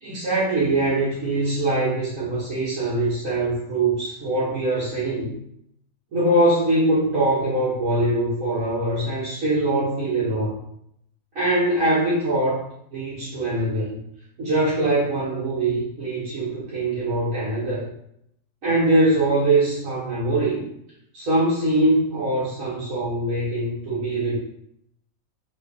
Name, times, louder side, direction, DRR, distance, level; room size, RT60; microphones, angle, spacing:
voice 1, 0.0-5.3 6.1-10.5 11.3-14.0 14.4-17.9 18.6-20.6 21.1-24.4, right 2 dB, 65° right, -10 dB, 1.7 m, -22 dB
4.3 x 3.4 x 3.5 m, 0.73 s
omnidirectional pair, 1.5 m